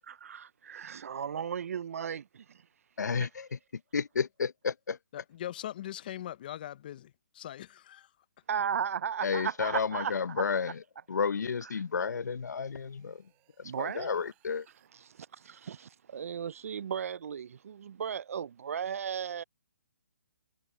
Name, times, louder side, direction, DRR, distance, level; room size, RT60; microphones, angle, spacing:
voice 1, 0.1-2.6 8.5-10.4 13.6-14.2 14.9-19.4, right 7 dB, 55° right, 0.4 m, -36 dB
voice 2, 3.0-3.6 3.9-5.0 9.2-10.8 11.1-13.2 13.6-14.7, left 5 dB, 90° left, 0.8 m, -32 dB
voice 3, 5.1-8.1, left 12 dB, 30° left, 0.7 m, -41 dB
sound 1, 10.9-14.9, right 25 dB, 20° right, 6.4 m, -73 dB
hypercardioid pair, 165°, 9 cm